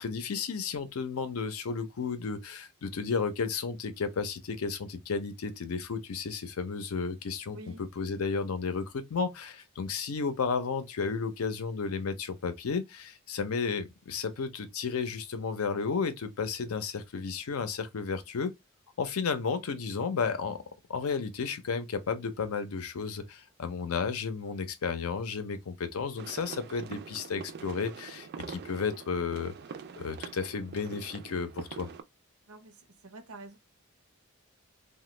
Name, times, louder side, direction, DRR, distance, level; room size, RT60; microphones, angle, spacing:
voice 1, 0.0-18.5 19.0-20.6 20.9-29.5 30.0-31.9, left 5 dB, 85° left, 0.5 m, -33 dB
voice 2, 7.5-7.8 32.5-33.6, right 2 dB, 90° right, 0.7 m, -47 dB
sound 1, 26.2-32.0, right 6 dB, 50° right, 0.3 m, -44 dB
2.9 x 2.2 x 3.1 m
head